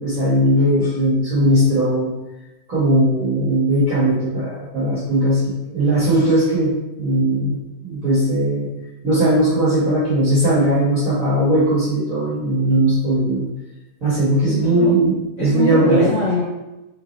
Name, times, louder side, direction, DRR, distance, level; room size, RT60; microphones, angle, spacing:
voice 1, 0.0-2.1 2.7-8.7 9.0-13.5 14.0-16.1, right 1 dB, 50° right, -10 dB, 1.7 m, -18 dB
voice 2, 14.5-14.9 15.4-16.4, equal, 55° left, -10 dB, 2.3 m, -22 dB
4.6 x 3.4 x 3.1 m, 0.99 s
omnidirectional pair, 2.1 m